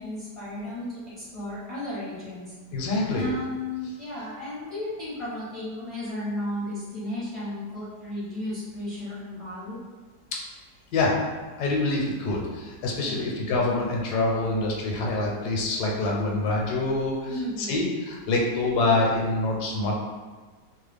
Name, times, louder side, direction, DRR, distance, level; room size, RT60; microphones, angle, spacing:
voice 1, 0.0-2.5 3.1-9.8 13.0-13.4 17.3-17.8, left 1 dB, 35° left, -10 dB, 0.5 m, -34 dB
voice 2, 2.7-3.3 10.9-11.1 11.6-17.3 17.7-20.0, left 2 dB, 75° left, -2 dB, 1.2 m, -25 dB
3.0 x 2.1 x 3.3 m, 1.4 s
omnidirectional pair, 1.8 m